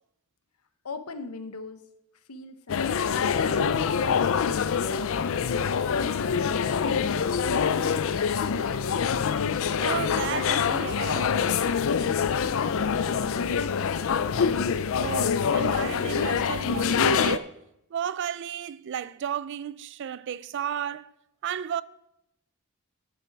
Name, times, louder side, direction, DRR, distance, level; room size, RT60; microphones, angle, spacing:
voice 1, 0.8-1.8 2.1-5.1 5.4-5.8 6.4-8.8 12.2-14.3, left 3 dB, 85° left, 0.9 m, -43 dB
sound 1, 2.7-17.4, left 6 dB, 65° left, 0.4 m, -25 dB
voice 2, 9.8-11.7 14.6-14.7 15.0-17.6 17.9-21.1 21.4-21.8, right 9 dB, 55° right, 0.3 m, -33 dB
10.5 x 7.8 x 4.6 m
head